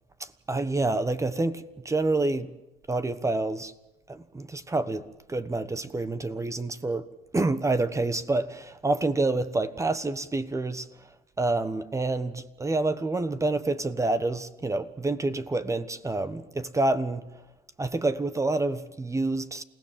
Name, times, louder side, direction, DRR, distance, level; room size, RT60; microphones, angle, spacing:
voice 1, 0.2-2.5 2.9-3.7 4.1-7.1 7.3-10.9 11.4-17.2 17.8-19.6, right 2 dB, 20° right, 1.2 m, -28 dB
29.0 x 17.0 x 7.5 m
cardioid pair, 110°, 17 cm